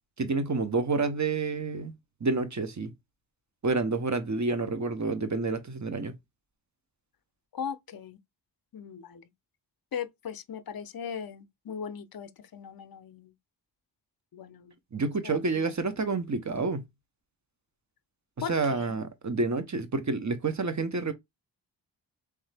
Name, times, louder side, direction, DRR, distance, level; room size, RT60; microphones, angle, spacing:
voice 1, 0.2-1.9 2.2-2.9 3.6-6.1 14.9-16.8 18.5-21.1, right 3 dB, 40° right, 0.9 m, -29 dB
voice 2, 7.5-8.2 8.7-9.3 9.9-13.3 14.3-14.7 15.2-15.6 18.4-18.9, left 7 dB, 55° left, 0.6 m, -39 dB
3.5 x 3.2 x 3.3 m
cardioid pair, 50°, 44 cm